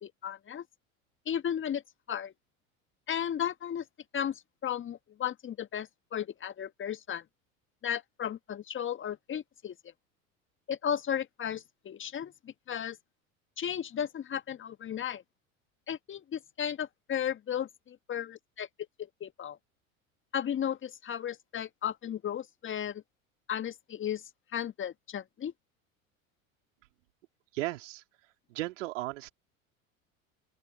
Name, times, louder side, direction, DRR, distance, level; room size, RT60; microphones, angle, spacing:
voice 1, 0.0-0.6 1.2-1.8 2.1-2.3 3.1-3.8 4.1-7.2 7.8-9.7 10.7-13.0 13.6-15.2 15.9-18.7 19.2-19.6 20.3-23.0 23.5-24.2 24.5-25.5, left 9 dB, 30° left, 1.6 m, -35 dB
voice 2, 27.5-28.0 28.5-29.3, right 18 dB, 65° right, 3.5 m, -35 dB
open air
figure-of-eight pair, 75°, 41 cm